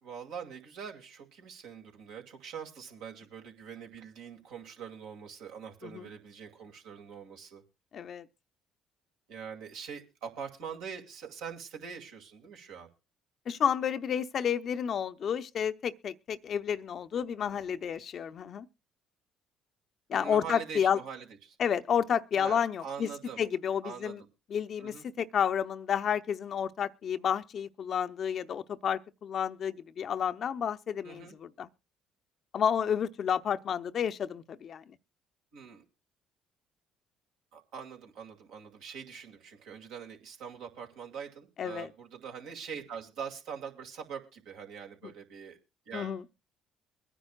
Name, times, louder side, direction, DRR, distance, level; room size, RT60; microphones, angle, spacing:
voice 1, 0.0-7.6 9.3-12.9 20.1-21.6 22.4-23.4 23.8-24.3 24.8-25.0 31.0-31.4 35.5-35.8 37.5-45.6 45.9-46.2, right 7 dB, 75° right, 2.3 m, -43 dB
voice 2, 7.9-8.3 13.5-18.7 20.1-21.0 21.6-23.1 23.4-24.2 24.5-31.7 32.5-35.0 41.6-41.9 45.0-45.1 45.9-46.2, left 8 dB, 55° left, 0.7 m, -31 dB
23.0 x 10.0 x 2.3 m
hypercardioid pair, 55°, 0 cm